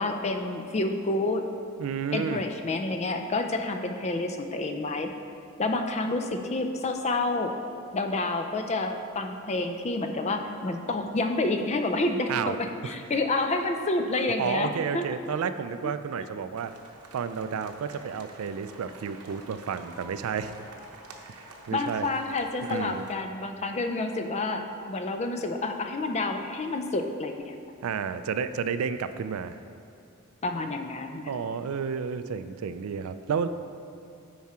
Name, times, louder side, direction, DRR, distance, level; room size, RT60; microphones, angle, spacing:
voice 1, 0.0-1.4 2.1-5.1 5.6-7.5 7.9-15.1 15.8-15.9 21.7-27.6 30.4-31.4, left 2 dB, 30° left, 5 dB, 0.4 m, -29 dB
voice 2, 1.8-2.4 12.3-12.6 12.8-12.9 14.4-16.7 17.1-20.5 21.3-22.1 22.6-23.1 27.8-29.6 31.3-33.5, right 6 dB, 70° right, 11 dB, 0.3 m, -31 dB
sound 1, 16.5-23.1, right 3 dB, 90° right, 0.8 m, -49 dB
9.4 x 4.8 x 4.3 m, 2.6 s
head